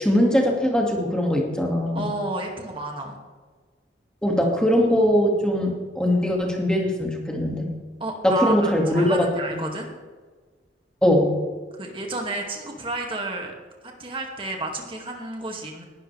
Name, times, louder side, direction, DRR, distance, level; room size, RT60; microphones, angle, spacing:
voice 1, 0.0-2.1 4.2-7.7 8.2-9.6 11.0-11.3, equal, 5° left, -1 dB, 2.1 m, -21 dB
voice 2, 1.9-3.2 8.0-9.9 11.8-13.5 13.8-15.8, right 2 dB, 30° right, 1 dB, 2.1 m, -31 dB
19.5 x 11.5 x 3.4 m, 1.4 s
head